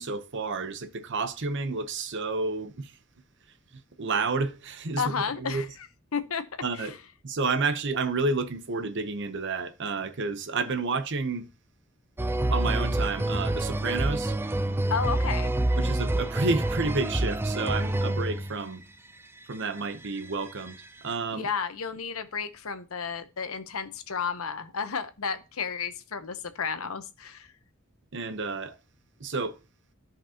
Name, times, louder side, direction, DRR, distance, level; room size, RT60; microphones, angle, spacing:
voice 1, 0.0-2.9 4.0-5.6 6.6-6.9 7.2-11.5 12.5-14.3 15.8-18.8 19.5-20.8 21.0-21.5 28.1-28.7 29.2-29.6, right 3 dB, 55° right, 0.9 m, -30 dB
voice 2, 5.0-5.7 6.1-6.4 6.8-6.9 14.9-15.5 21.3-27.5, left 6 dB, 80° left, 0.9 m, -32 dB
sound 1, 12.2-18.7 19.6-20.8 21.1-21.2, right 1 dB, 10° right, 0.3 m, -27 dB
13.5 x 5.3 x 2.9 m
head